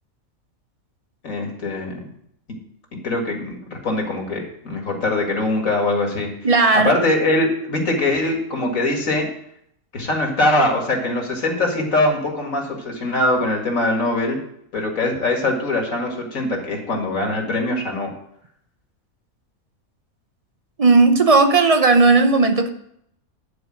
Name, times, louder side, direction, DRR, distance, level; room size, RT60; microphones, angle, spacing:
voice 1, 1.2-2.0 2.9-6.3 6.7-9.3 9.9-14.4 14.7-18.1, left 2 dB, 65° left, 1 dB, 2.4 m, -22 dB
voice 2, 6.4-6.9 20.8-22.7, right 3 dB, 35° right, 7 dB, 0.6 m, -15 dB
10.5 x 4.8 x 7.5 m, 0.72 s
omnidirectional pair, 1.5 m